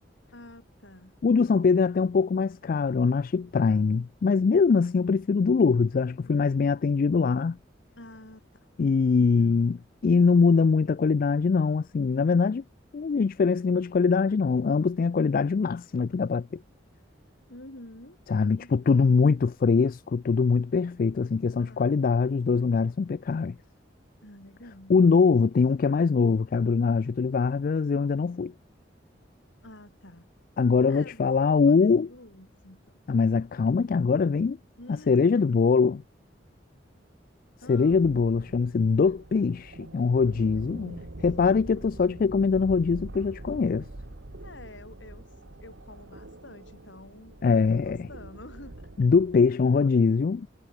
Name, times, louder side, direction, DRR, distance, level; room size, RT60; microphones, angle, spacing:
voice 1, 0.3-1.2 6.0-6.4 7.9-8.7 9.1-9.7 17.5-19.3 21.6-22.0 24.2-25.0 29.6-30.3 30.9-33.0 34.8-35.4 37.6-38.2 40.5-41.1 44.4-45.3 45.6-48.9, left 1 dB, 80° left, 6.8 m, -49 dB
voice 2, 1.2-7.6 8.8-12.6 12.9-16.6 18.3-23.6 24.9-28.5 30.6-32.1 33.1-34.6 34.9-36.0 37.7-43.9 47.4-48.1 49.0-50.5, left 5 dB, 50° left, 0.3 m, -23 dB
sound 1, 37.9-49.5, right 1 dB, 75° right, 1.6 m, -44 dB
head